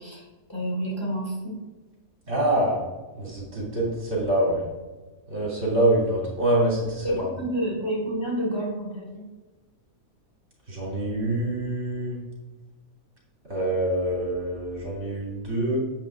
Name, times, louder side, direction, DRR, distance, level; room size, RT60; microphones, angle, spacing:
voice 1, 0.0-1.6 7.0-9.3, right 1 dB, 20° left, -4 dB, 3.1 m, -29 dB
voice 2, 2.3-2.8 3.1-4.7 5.3-7.2 10.7-12.2 13.5-15.8, right 1 dB, 50° right, -5 dB, 3.6 m, -25 dB
10.0 x 7.7 x 3.8 m, 1.2 s
omnidirectional pair, 1.5 m